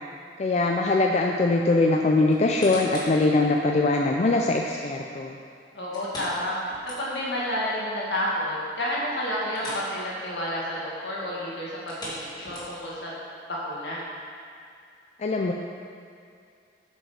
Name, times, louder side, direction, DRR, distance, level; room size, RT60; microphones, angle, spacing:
voice 1, 0.4-5.4 15.2-15.5, left 2 dB, 40° left, 0 dB, 0.4 m, -22 dB
sound 1, 2.3-3.2 3.7-3.8 5.9-7.4 7.7-7.8 8.3-8.4 9.5-9.9 10.2-10.4 11.7-13.0 13.6-13.7, equal, 20° left, 1.8 m, -39 dB
voice 2, 5.7-6.6 6.8-13.1 13.5-14.0, left 1 dB, 75° left, -6 dB, 1.9 m, -30 dB
7.4 x 5.4 x 4.9 m, 2.4 s
head